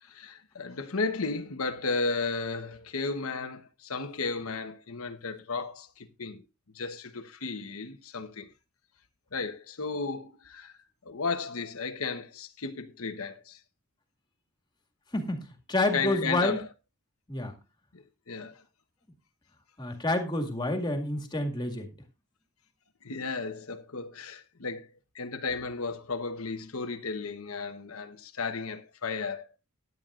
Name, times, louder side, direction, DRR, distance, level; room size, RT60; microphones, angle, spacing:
voice 1, 0.0-6.4 6.7-8.5 9.3-10.7 11.0-13.6 15.9-16.7 17.9-18.6 23.0-24.9 25.1-29.5, left 4 dB, 90° left, 1.1 m, -34 dB
voice 2, 15.1-15.4 15.7-16.6 17.3-17.5 19.8-21.9, left 2 dB, 20° left, 2.0 m, -28 dB
16.5 x 11.0 x 2.5 m
head